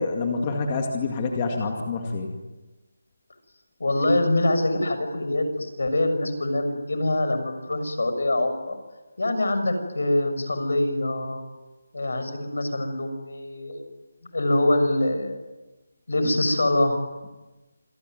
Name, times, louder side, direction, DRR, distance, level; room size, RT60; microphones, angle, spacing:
voice 1, 0.0-2.3 16.2-16.3, left 3 dB, 20° left, 2 dB, 2.1 m, -27 dB
voice 2, 3.8-8.7 9.2-11.4 11.9-13.9 14.3-15.4 16.1-17.0, left 1 dB, 70° left, 8 dB, 6.6 m, -24 dB
27.0 x 20.5 x 9.4 m, 1.1 s
figure-of-eight pair, 175°, 0 cm